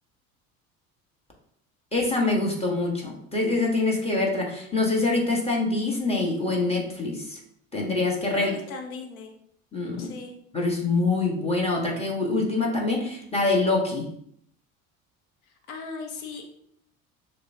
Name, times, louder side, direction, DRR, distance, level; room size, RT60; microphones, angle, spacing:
voice 1, 1.9-7.4 7.7-8.5 9.7-10.1 10.5-14.1, left 3 dB, 15° left, -1 dB, 1.4 m, -25 dB
voice 2, 8.3-9.3 10.0-10.3 15.4-16.4, left 4 dB, 85° left, 3 dB, 0.8 m, -38 dB
6.3 x 2.2 x 2.8 m, 0.68 s
hypercardioid pair, 70°, 41 cm